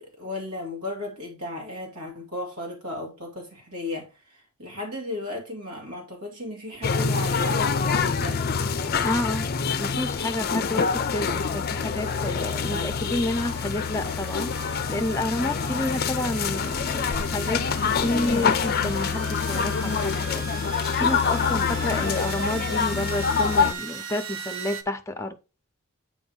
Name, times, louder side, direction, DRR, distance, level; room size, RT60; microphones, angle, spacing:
voice 1, 0.0-8.4, left 2 dB, 85° right, 2.5 m, -35 dB
sound 1, 6.8-23.7, left 5 dB, 45° left, 0.5 m, -26 dB
voice 2, 9.0-9.5 9.8-14.5 14.9-20.5 21.0-25.4, left 1 dB, 15° left, 0.8 m, -30 dB
sound 2, 10.6-24.8, right 5 dB, 60° right, 0.8 m, -40 dB
8.8 x 3.0 x 5.3 m
head